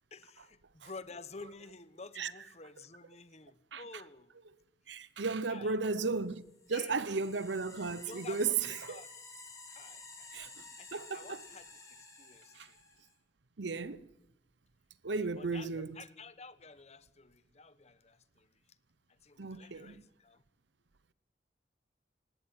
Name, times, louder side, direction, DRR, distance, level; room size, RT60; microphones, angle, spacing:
voice 1, 0.1-4.3 5.5-5.7 6.7-7.1 8.0-9.1 9.7-10.3 10.8-12.8 15.1-18.8 19.1-20.4, left 3 dB, 35° left, 1.0 m, -51 dB
voice 2, 4.9-6.4 6.7-9.0 10.3-10.6 10.9-11.4 12.5-12.7 13.6-14.1 15.0-16.0 19.4-20.0, right 4 dB, 75° right, 0.9 m, -35 dB
sound 1, 6.3-13.1, left 3 dB, 20° left, 6.8 m, -52 dB
19.5 x 17.0 x 9.9 m
head